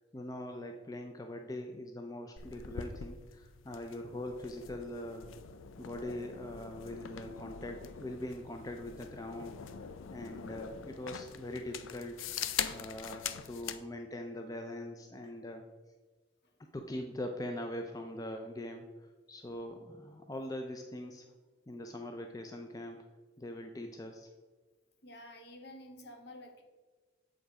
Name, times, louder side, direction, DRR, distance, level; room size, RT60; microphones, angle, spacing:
voice 1, 0.1-5.3 5.8-12.2 12.7-15.7 16.7-21.3 21.7-23.0 23.4-24.3, left 1 dB, 20° left, 4 dB, 0.4 m, -42 dB
sound 1, 2.4-13.8, left 8 dB, 90° left, 0.5 m, -43 dB
voice 2, 25.0-26.6, left 1 dB, 55° left, 3 dB, 1.1 m, -50 dB
7.7 x 5.1 x 4.8 m, 1.3 s
head